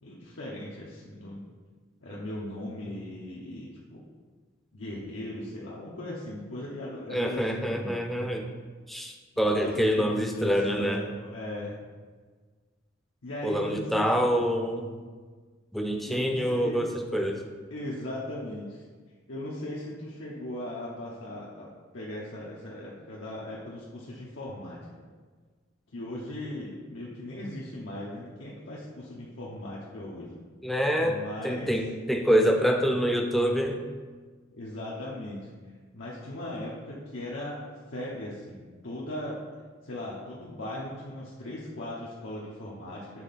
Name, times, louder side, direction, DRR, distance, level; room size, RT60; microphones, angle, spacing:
voice 1, 0.0-1.4 2.0-4.0 4.7-8.0 9.6-10.5 10.8-11.8 13.2-14.1 16.1-16.8 17.7-18.8 19.3-24.9 25.9-30.4 31.0-31.7 34.5-35.5 35.9-37.6 37.9-39.4 39.8-43.2, left 1 dB, 85° left, -6 dB, 0.9 m, -38 dB
voice 2, 7.1-8.5 8.9-11.0 13.4-14.9 15.7-17.4 30.6-31.2 31.4-33.8, equal, ahead, 2 dB, 0.5 m, -26 dB
7.4 x 3.6 x 4.1 m, 1.5 s
head